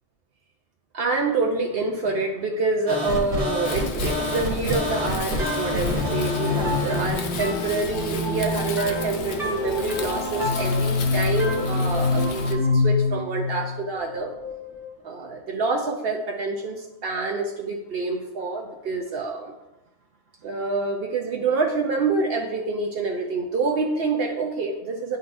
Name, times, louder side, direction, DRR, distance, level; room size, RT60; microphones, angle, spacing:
voice 1, 0.9-14.3 15.0-19.5 20.4-25.2, right 3 dB, 65° right, 2 dB, 0.8 m, -27 dB
sound 1, 2.9-7.8, left 1 dB, 85° right, 1.7 m, -28 dB
Wind, 3.6-12.5, left 5 dB, 85° left, 1.0 m, -34 dB
sound 2, 5.4-14.9, left 3 dB, ahead, 1.1 m, -26 dB
10.5 x 4.0 x 2.6 m, 0.99 s
omnidirectional pair, 1.1 m